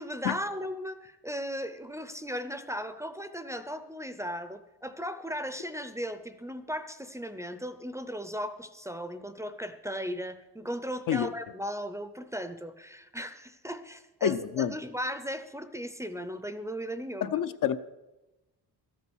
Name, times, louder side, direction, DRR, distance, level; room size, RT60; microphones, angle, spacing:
voice 1, 0.0-17.4, equal, 10° right, 10 dB, 0.6 m, -37 dB
voice 2, 14.2-14.7 17.2-17.8, left 9 dB, 55° left, 10 dB, 0.6 m, -27 dB
13.0 x 8.6 x 6.2 m, 1.0 s
cardioid pair, 130°, 38 cm